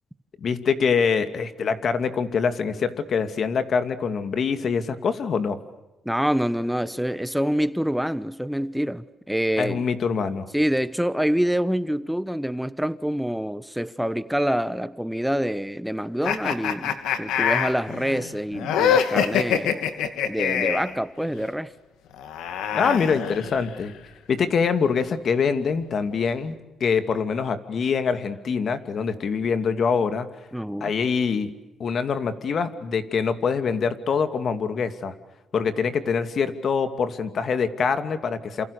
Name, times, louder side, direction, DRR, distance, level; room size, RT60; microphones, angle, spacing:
voice 1, 0.4-5.6 9.6-10.5 22.7-23.9 24.3-26.5 26.8-30.3 30.8-31.5 31.8-35.1 35.5-38.6, left 6 dB, 55° left, 9 dB, 2.7 m, -24 dB
voice 2, 6.0-9.8 10.5-19.8 20.3-21.7 30.5-30.9, equal, ahead, 14 dB, 1.1 m, -26 dB
sound 1, 16.2-20.9 22.1-23.8, left 8 dB, 85° left, 2.6 m, -25 dB
28.5 x 28.0 x 6.8 m, 1.0 s
cardioid pair, 90°, 0 cm